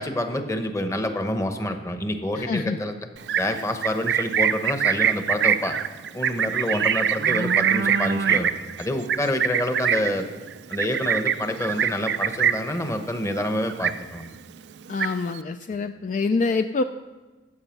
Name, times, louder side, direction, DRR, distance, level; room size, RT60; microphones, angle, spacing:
voice 1, 0.0-2.9 3.4-5.8 6.1-8.5 8.8-10.3 10.7-14.3, left 1 dB, 15° left, 7 dB, 0.9 m, -27 dB
voice 2, 2.3-2.8 14.9-16.8, left 3 dB, 45° left, 8 dB, 0.3 m, -25 dB
Livestock farm animals working animals, 3.2-12.8 13.1-13.4 13.7-14.4 14.7-15.4, right 8 dB, 70° right, 0.4 m, -24 dB
14.5 x 7.8 x 5.8 m, 1.2 s
head